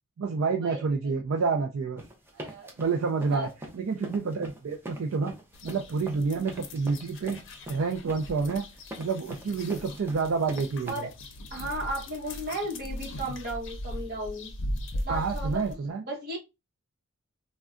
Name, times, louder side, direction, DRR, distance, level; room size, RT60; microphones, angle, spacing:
voice 1, 0.2-2.0 2.8-3.5 3.7-5.3 5.6-7.4 7.7-8.6 9.0-11.1 15.1-16.0, right 4 dB, 65° right, 0.4 m, -28 dB
sound 1, 2.0-10.9, right 1 dB, 10° right, 0.5 m, -42 dB
voice 2, 2.3-2.7 3.3-3.5 10.9-11.1 11.5-14.5 15.0-15.6 16.1-16.4, right 1 dB, 45° right, 1.1 m, -34 dB
sound 2, 5.5-15.7, left 1 dB, 60° left, 0.6 m, -39 dB
3.5 x 2.2 x 2.4 m
head